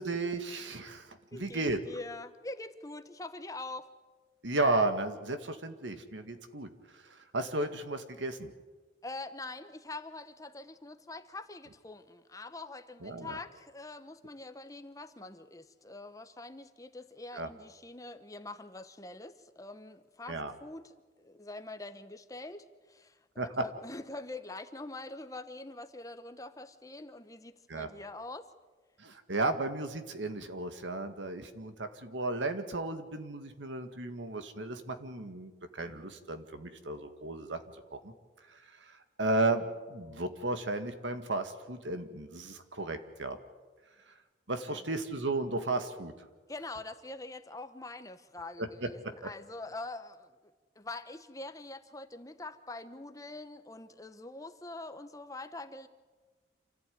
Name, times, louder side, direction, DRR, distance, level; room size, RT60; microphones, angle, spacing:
voice 1, 0.0-1.8 4.4-6.7 7.1-8.5 13.0-13.4 17.3-17.5 20.3-20.5 23.4-23.6 27.7-27.9 29.0-37.6 37.9-38.1 38.5-43.4 44.5-46.1 48.6-48.9, right 2 dB, 90° right, 8 dB, 1.9 m, -34 dB
voice 2, 1.3-3.9 9.0-28.5 35.5-35.6 44.7-44.8 46.5-50.4 50.8-55.9, left 2 dB, 20° left, 9 dB, 1.0 m, -44 dB
27.5 x 15.0 x 9.5 m, 1.3 s
head